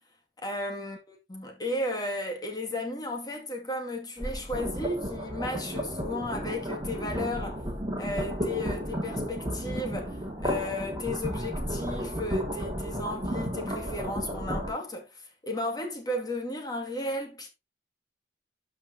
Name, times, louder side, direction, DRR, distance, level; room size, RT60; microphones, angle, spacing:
voice 1, 0.4-7.6 8.0-17.5, left 1 dB, 25° left, 2.1 m, -34 dB
sound 1, 4.2-14.7, equal, 25° right, 2.1 m, -33 dB
12.5 x 5.2 x 2.8 m
head